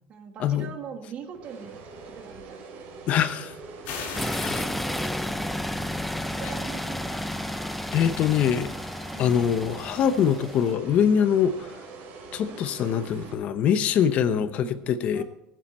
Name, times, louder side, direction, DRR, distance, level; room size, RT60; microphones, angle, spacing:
voice 1, 0.1-1.7 2.0-3.4 6.3-7.7 9.1-9.4 12.4-13.4 14.3-14.8 15.1-15.2, right 7 dB, 45° right, 5 dB, 1.7 m, -43 dB
sound 1, 1.3-13.3, right 4 dB, 75° right, 4.1 m, -44 dB
voice 2, 3.1-3.5 4.3-4.7 7.9-8.7 9.2-11.7 12.3-15.2, left 8 dB, 50° left, 11 dB, 0.8 m, -23 dB
sound 2, 3.8-5.4, left 5 dB, 65° left, 4.2 m, -38 dB
sound 3, 4.1-10.7, left 1 dB, 5° left, 0.4 m, -32 dB
18.5 x 9.2 x 4.3 m, 0.87 s
cardioid pair, 145°, 3 cm